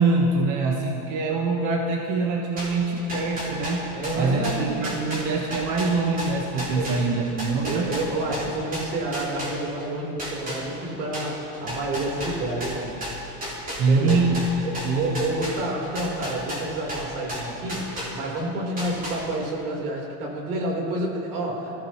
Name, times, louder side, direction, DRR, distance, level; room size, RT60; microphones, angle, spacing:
voice 1, 0.0-3.8 4.2-7.9 13.7-15.2 15.7-15.8, right 3 dB, 45° right, 1 dB, 1.4 m, -24 dB
sound 1, 2.6-9.9 10.2-18.4 18.8-19.6, equal, 20° right, 3.9 m, -34 dB
voice 2, 3.9-4.7 6.7-6.9 7.6-13.0 13.9-14.2 14.7-21.7, right 2 dB, 85° right, -1 dB, 4.1 m, -29 dB
22.0 x 15.5 x 3.1 m, 3.0 s
supercardioid pair, 140°, 43 cm